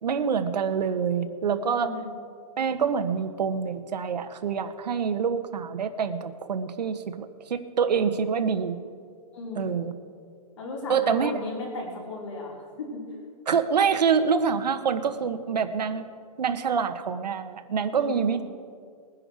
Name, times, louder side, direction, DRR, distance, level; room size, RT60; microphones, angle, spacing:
voice 1, 0.0-1.9 2.6-8.8 9.6-9.9 10.9-11.3 13.5-16.1 16.4-18.4, right 6 dB, 85° right, 8 dB, 1.3 m, -26 dB
voice 2, 1.6-2.1 9.3-9.9 10.6-13.1 17.9-18.4, left 2 dB, 50° left, -3 dB, 4.7 m, -36 dB
21.0 x 10.0 x 4.8 m, 2.1 s
hypercardioid pair, 175°, 21 cm